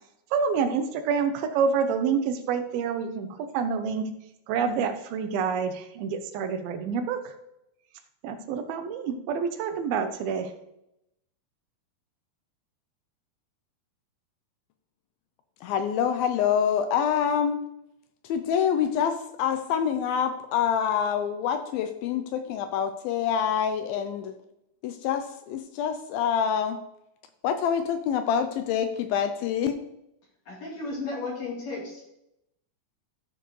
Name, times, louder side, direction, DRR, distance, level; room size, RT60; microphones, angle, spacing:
voice 1, 0.3-4.2 4.5-7.3 8.2-10.6, right 6 dB, 80° right, 8 dB, 2.6 m, -27 dB
voice 2, 15.6-17.6 18.3-24.3 24.8-26.8 27.4-29.8, left 8 dB, 80° left, 8 dB, 2.3 m, -26 dB
voice 3, 30.5-32.0, left 3 dB, 45° left, -5 dB, 4.3 m, -34 dB
14.5 x 6.8 x 3.1 m, 0.83 s
omnidirectional pair, 4.4 m